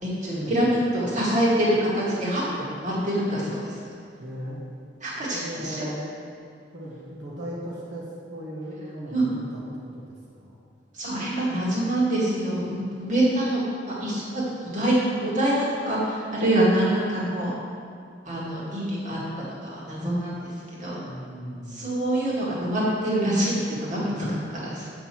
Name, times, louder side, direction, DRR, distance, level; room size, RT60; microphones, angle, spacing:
voice 1, 0.0-3.8 5.0-5.9 9.1-9.2 10.9-13.6 14.0-14.9 15.2-17.5 18.3-20.5 20.8-21.0 21.7-24.9, right 1 dB, 45° right, -6 dB, 2.2 m, -25 dB
voice 2, 4.2-4.6 5.3-6.1 6.7-9.6 9.9-10.6 21.0-21.8, equal, 75° right, -7 dB, 1.6 m, -37 dB
7.6 x 5.5 x 6.0 m, 2.3 s
head